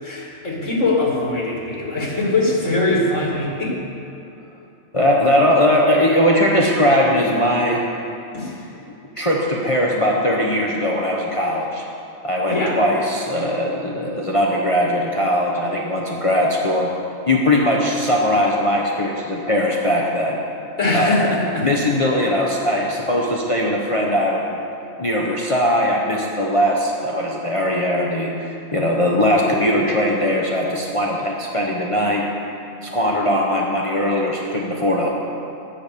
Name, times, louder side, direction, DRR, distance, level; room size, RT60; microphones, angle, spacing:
voice 1, 0.0-3.8 8.3-8.7 12.5-12.8 20.8-21.7, left 2 dB, 70° left, -3 dB, 2.8 m, -21 dB
voice 2, 4.9-7.8 9.2-11.8 12.2-16.9 17.3-20.4 20.9-21.3 21.6-24.7 25.0-32.3 32.8-35.1, left 1 dB, 30° left, -2 dB, 1.0 m, -20 dB
10.5 x 8.5 x 6.8 m, 2.8 s
omnidirectional pair, 1.3 m